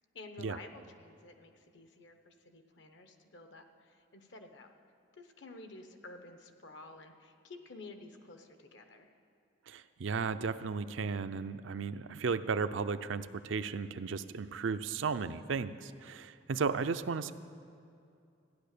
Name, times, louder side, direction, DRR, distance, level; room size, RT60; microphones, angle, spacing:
voice 1, 0.1-4.7 5.1-9.2, left 2 dB, 70° left, 6 dB, 1.0 m, -51 dB
voice 2, 9.7-17.3, right 5 dB, 80° right, 11 dB, 0.5 m, -35 dB
14.0 x 10.0 x 6.7 m, 2.5 s
head